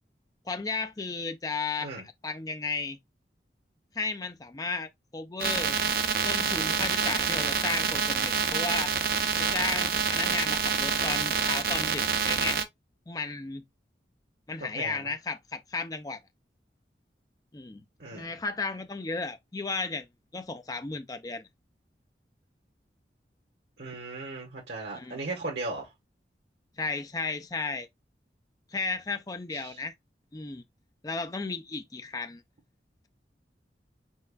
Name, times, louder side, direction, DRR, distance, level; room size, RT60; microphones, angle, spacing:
voice 1, 0.5-3.0 3.9-5.8 6.2-8.9 9.4-12.6 13.1-13.6 14.5-16.2 17.5-17.8 18.1-20.1 20.3-21.5 24.9-25.2 26.8-27.9 28.7-29.9 30.3-30.6 31.0-32.4, left 4 dB, 20° left, 0.4 m, -34 dB
sound 1, 5.4-12.6, right 6 dB, 55° right, 0.6 m, -27 dB
voice 2, 14.7-15.1 18.0-18.3 23.8-25.9 29.5-29.8, right 2 dB, 85° right, 1.4 m, -37 dB
4.5 x 4.2 x 2.3 m
head